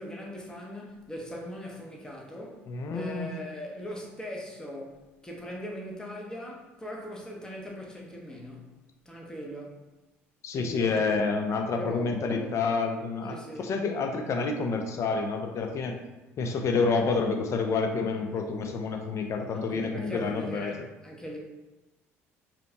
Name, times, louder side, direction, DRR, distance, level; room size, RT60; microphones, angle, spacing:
voice 1, 0.0-8.7 9.0-9.8 10.5-11.3 11.6-12.6 13.3-13.7 19.5-21.4, equal, 10° left, -2 dB, 0.9 m, -40 dB
voice 2, 2.7-3.3 10.4-16.0 16.4-20.7, left 4 dB, 45° left, 4 dB, 0.5 m, -28 dB
5.0 x 2.8 x 2.3 m, 1.1 s
figure-of-eight pair, 60°, 7 cm